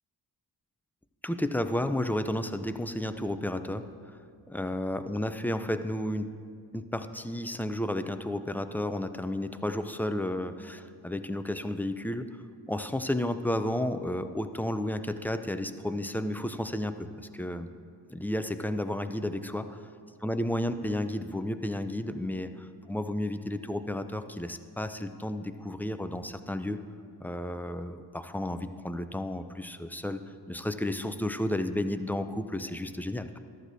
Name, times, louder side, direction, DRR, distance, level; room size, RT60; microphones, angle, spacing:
voice 1, 1.2-4.2 4.5-6.3 6.7-12.3 12.7-17.7 18.1-19.8 20.2-26.8 27.2-30.2 30.5-33.4, left 1 dB, 5° left, 9 dB, 0.4 m, -32 dB
13.5 x 12.0 x 2.7 m, 2.2 s
cardioid pair, 65°, 45 cm